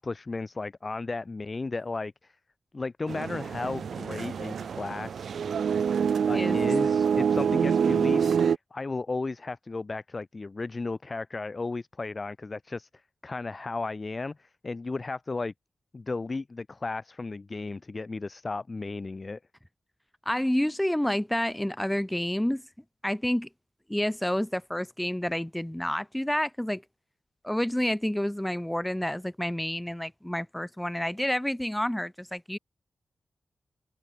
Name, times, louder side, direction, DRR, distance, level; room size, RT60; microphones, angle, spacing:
voice 1, 0.0-2.3 2.7-5.3 6.3-8.3 8.7-12.9 13.2-15.5 15.9-19.4, left 3 dB, 35° left, 6.9 m, -34 dB
sound 1, 3.1-8.6, right 7 dB, 85° right, 0.7 m, -26 dB
voice 2, 20.3-22.6 23.0-23.5 23.9-26.8 27.4-32.6, left 1 dB, 5° left, 2.1 m, -29 dB
wide cardioid pair, 120°, 0 cm